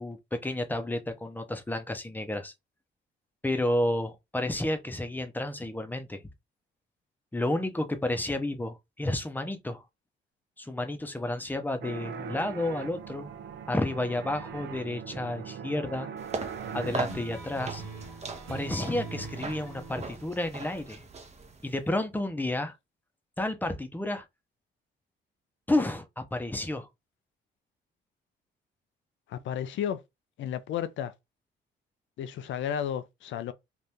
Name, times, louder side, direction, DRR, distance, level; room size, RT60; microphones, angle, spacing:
voice 1, 0.0-2.5 3.4-6.2 7.3-9.8 10.6-13.3 13.7-16.1 16.7-17.8 18.5-21.0 21.6-22.7 23.4-24.2 25.7-26.9, left 1 dB, 10° left, 0.7 m, -31 dB
sound 1, 11.8-17.0, right 7 dB, 65° right, 0.5 m, -40 dB
sound 2, 16.2-21.8, right 4 dB, 35° right, 0.8 m, -39 dB
sound 3, 16.6-21.6, right 4 dB, 85° right, 1.2 m, -42 dB
voice 2, 29.3-30.0 30.4-31.1 32.2-33.5, left 9 dB, 70° left, 0.5 m, -32 dB
2.8 x 2.5 x 3.4 m
cardioid pair, 90°, 20 cm